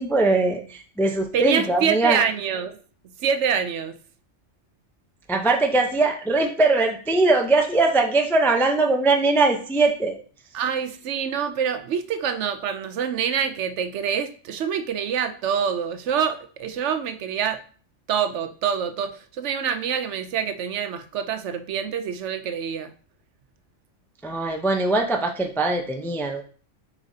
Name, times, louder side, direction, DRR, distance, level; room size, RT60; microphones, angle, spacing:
voice 1, 0.0-2.2 5.3-10.2 24.2-26.4, right 3 dB, 5° left, 3 dB, 0.4 m, -21 dB
voice 2, 1.3-2.8 3.2-4.0 10.5-17.6 18.1-22.9, right 7 dB, 70° right, 11 dB, 0.9 m, -26 dB
7.3 x 5.0 x 2.7 m, 0.41 s
omnidirectional pair, 1.3 m